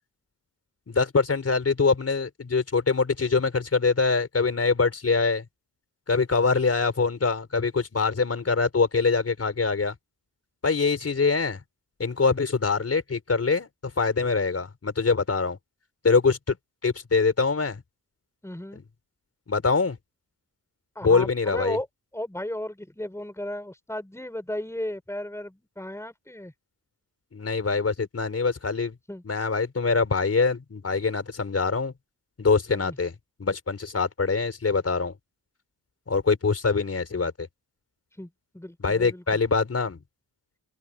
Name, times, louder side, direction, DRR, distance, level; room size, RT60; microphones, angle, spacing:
voice 1, 0.9-5.4 6.1-9.9 10.6-11.6 12.0-15.6 16.0-16.6 16.8-17.8 19.5-20.0 21.0-21.8 27.3-28.9 29.2-31.9 32.4-33.1 33.4-35.1 36.1-37.5 38.8-40.0, left 4 dB, 35° left, 4.3 m, -24 dB
voice 2, 18.4-18.8 20.9-21.9 22.1-26.5 29.1-29.2 32.7-33.0 38.2-38.3 38.5-39.2, left 1 dB, 5° left, 6.1 m, -35 dB
cardioid pair, 105°, 40 cm